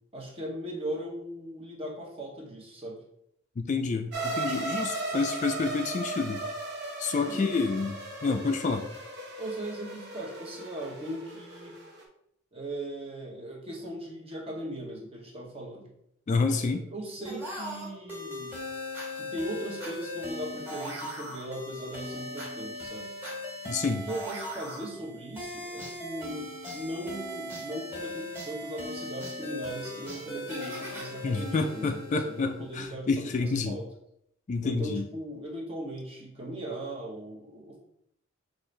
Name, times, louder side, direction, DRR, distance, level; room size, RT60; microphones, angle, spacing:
voice 1, 0.1-3.0 7.3-7.6 8.2-8.4 9.4-11.7 12.5-15.9 16.5-18.6 19.1-23.1 23.9-33.8 34.6-37.8, right 1 dB, 30° right, -1 dB, 1.0 m, -38 dB
voice 2, 3.6-6.4 7.0-8.9 16.3-16.8 23.6-24.1 31.2-33.8 34.5-35.1, left 4 dB, 35° left, 6 dB, 0.3 m, -29 dB
sound 1, 4.1-12.0, right 2 dB, 55° right, 0.8 m, -36 dB
sound 2, 17.2-32.7, left 1 dB, 10° right, 1.5 m, -39 dB
5.5 x 2.6 x 3.2 m, 0.74 s
head